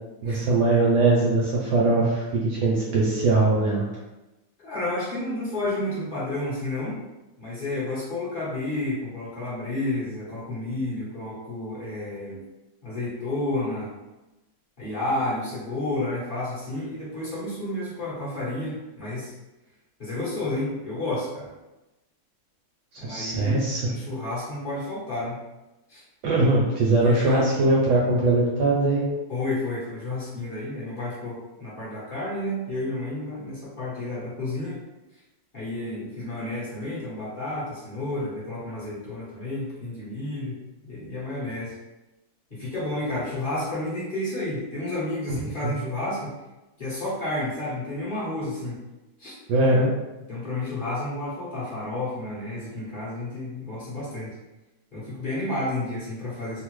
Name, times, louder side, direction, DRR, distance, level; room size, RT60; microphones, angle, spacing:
voice 1, 0.2-3.9 22.9-23.8 26.2-29.0 45.3-45.4 45.6-45.7 49.5-49.9, right 2 dB, 75° right, -4 dB, 0.9 m, -21 dB
voice 2, 4.6-7.0 7.4-12.4 12.8-13.9 14.8-19.3 20.0-21.5 23.0-25.4 25.9-26.0 27.0-27.5 29.3-34.8 35.5-40.6 40.8-41.8 42.5-46.3 46.8-48.8 49.2-49.4 49.6-49.9 50.3-54.3 54.9-56.6, left 2 dB, 45° left, -9 dB, 0.6 m, -31 dB
3.4 x 2.0 x 3.0 m, 1.0 s
omnidirectional pair, 2.3 m